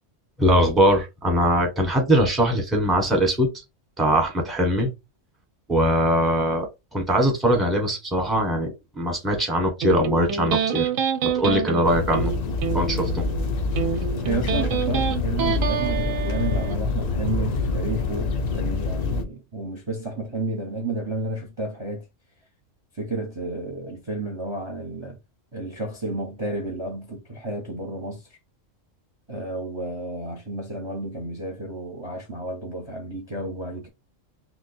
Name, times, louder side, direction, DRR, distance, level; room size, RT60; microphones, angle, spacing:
voice 1, 0.4-3.5 4.0-4.9 5.7-10.9 11.2-12.3 12.7-13.2, equal, ahead, 0.8 m, -21 dB
Electric guitar, 9.8-16.8, right 7 dB, 90° right, 1.0 m, -27 dB
sound 1, 11.8-19.2, left 3 dB, 75° left, 0.3 m, -26 dB
voice 2, 14.2-22.0 23.0-25.1 25.5-28.2 29.3-33.9, right 2 dB, 30° right, 0.7 m, -31 dB
2.9 x 2.2 x 4.0 m
omnidirectional pair, 1.3 m